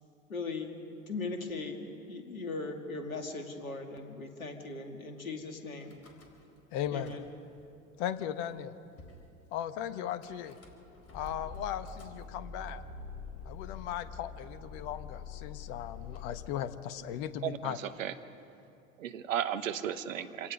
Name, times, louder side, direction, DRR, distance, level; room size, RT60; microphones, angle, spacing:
voice 1, 0.3-0.7 1.1-1.8 2.1-5.9 6.9-7.2, left 3 dB, 80° left, 4 dB, 2.3 m, -39 dB
Car / Engine starting / Idling, 5.8-6.6 6.9-7.6 8.3-8.4 8.6-8.7 9.0-9.3 10.2-16.4, left 4 dB, 35° left, 4.5 m, -46 dB
voice 2, 6.7-7.1 8.0-8.8 9.5-10.6 11.1-12.8 13.4-17.8, left 10 dB, 55° left, 11 dB, 1.3 m, -37 dB
voice 3, 17.4-18.1 19.0-20.5, right 10 dB, 70° right, 11 dB, 1.2 m, -34 dB
28.0 x 17.5 x 5.4 m, 2.7 s
figure-of-eight pair, 70°, 41 cm